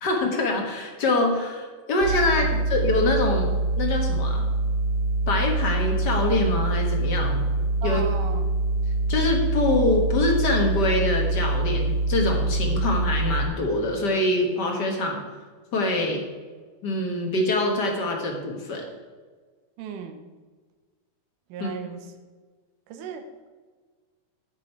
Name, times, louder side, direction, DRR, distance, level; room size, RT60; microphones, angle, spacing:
voice 1, 0.0-2.4 2.7-4.4 5.3-7.4 7.8-8.0 9.1-15.2 15.7-16.2 16.8-18.8 21.6-21.7, left 2 dB, 50° left, 1 dB, 1.3 m, -24 dB
sound 1, 2.0-13.4, right 2 dB, 50° right, 2.8 m, -25 dB
voice 2, 7.8-8.6 19.8-20.3 21.5-22.1 22.9-23.5, right 7 dB, 90° right, 7 dB, 2.4 m, -36 dB
8.8 x 8.4 x 4.6 m, 1.4 s
omnidirectional pair, 3.6 m